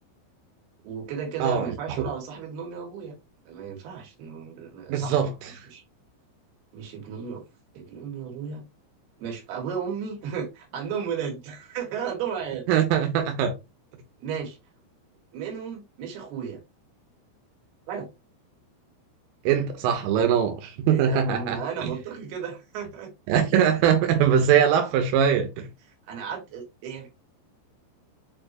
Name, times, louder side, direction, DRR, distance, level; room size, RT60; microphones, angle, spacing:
voice 1, 0.8-3.2 3.5-5.3 5.7-5.8 6.7-7.4 7.7-8.6 9.2-12.7 14.2-14.6 15.3-16.6 17.9-18.1 20.9-23.1 26.1-27.1, right 7 dB, 60° right, 3.8 m, -34 dB
voice 2, 1.4-1.8 4.9-5.5 12.7-13.6 19.5-21.9 23.3-25.7, right 8 dB, 85° right, 3.8 m, -22 dB
7.5 x 4.5 x 2.9 m
omnidirectional pair, 5.7 m